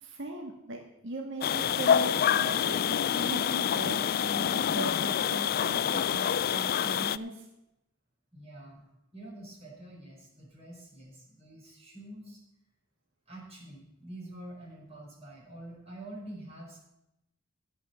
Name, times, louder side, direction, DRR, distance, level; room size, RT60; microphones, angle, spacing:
voice 1, 0.0-0.8 1.0-7.4, right 2 dB, 65° right, 1 dB, 1.6 m, -39 dB
sound 1, 1.4-7.2, left 9 dB, 45° left, 0.3 m, -27 dB
voice 2, 8.3-8.8 9.1-12.4 13.3-16.8, right 1 dB, 30° right, -4 dB, 5.0 m, -46 dB
17.0 x 5.9 x 6.9 m, 0.88 s
head